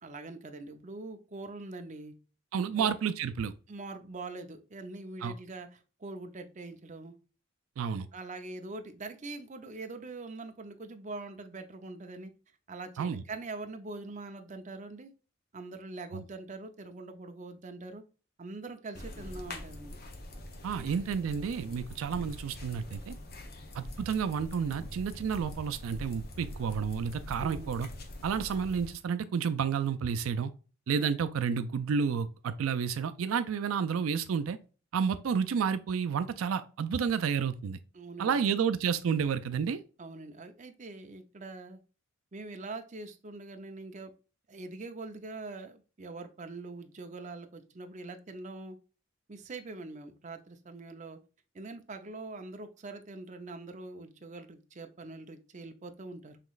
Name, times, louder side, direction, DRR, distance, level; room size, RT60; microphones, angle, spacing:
voice 1, 0.0-2.1 2.8-2.9 3.7-7.2 8.1-12.3 12.7-15.1 15.5-18.0 18.4-20.0 20.7-20.9 27.4-27.7 31.0-31.1 37.9-38.5 40.0-41.8 42.3-44.1 44.5-48.8 49.3-51.2 51.5-56.4, right 3 dB, 35° right, 0.6 m, -43 dB
voice 2, 2.5-3.5 5.2-5.3 7.8-8.1 13.0-13.2 16.1-16.2 20.6-23.1 23.7-27.9 28.2-30.5 30.9-34.6 34.9-37.8 38.2-39.8, right 6 dB, 80° right, 0.4 m, -30 dB
sound 1, 18.9-29.0, left 1 dB, 50° left, 0.8 m, -44 dB
5.8 x 3.0 x 2.4 m
head